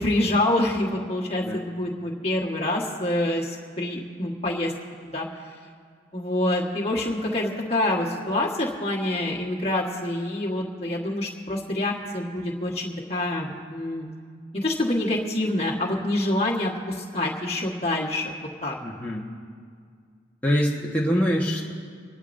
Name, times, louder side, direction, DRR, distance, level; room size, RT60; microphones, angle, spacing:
voice 1, 0.0-4.7 5.0-5.3 6.1-14.1 14.5-18.3 18.6-18.8, left 1 dB, 30° left, -4 dB, 1.5 m, -26 dB
voice 2, 18.8-19.3 20.4-21.7, equal, 10° left, -5 dB, 1.3 m, -24 dB
30.0 x 12.0 x 2.7 m, 2.1 s
head